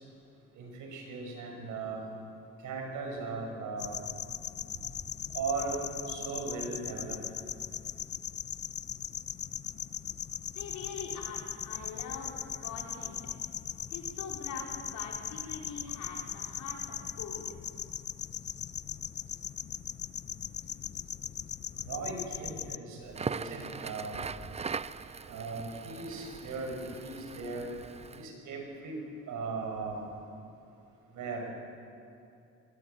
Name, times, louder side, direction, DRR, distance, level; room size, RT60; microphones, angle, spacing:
voice 1, 0.5-2.1 2.6-4.0 5.3-5.8 6.1-7.2 21.8-24.3 25.3-27.7 28.2-30.1 31.1-31.5, right 4 dB, 80° right, 2 dB, 5.7 m, -38 dB
sound 1, 3.8-22.8, left 8 dB, 35° left, 0.5 m, -39 dB
voice 2, 10.5-13.2 13.9-17.5, left 5 dB, 85° left, -1 dB, 4.5 m, -43 dB
Crackle, 23.0-28.3, right 5 dB, 20° right, 0.5 m, -40 dB
21.0 x 18.5 x 8.1 m, 2.7 s
cardioid pair, 90°, 30 cm